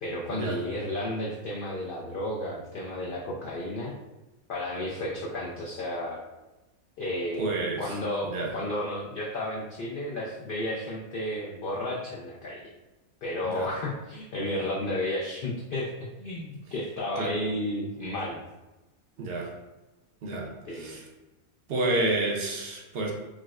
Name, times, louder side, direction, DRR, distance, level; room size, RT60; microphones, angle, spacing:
voice 1, 0.0-3.9 4.5-6.2 7.0-12.7 13.2-15.9 16.2-18.4 20.7-21.0, left 1 dB, 75° left, -4 dB, 0.5 m, -32 dB
voice 2, 7.4-7.9 8.2-8.5 13.5-13.7 17.2-17.3 19.2-19.5 20.2-21.0 21.7-23.1, right 2 dB, 60° right, -1 dB, 0.7 m, -29 dB
4.7 x 2.0 x 2.3 m, 1.1 s
omnidirectional pair, 1.5 m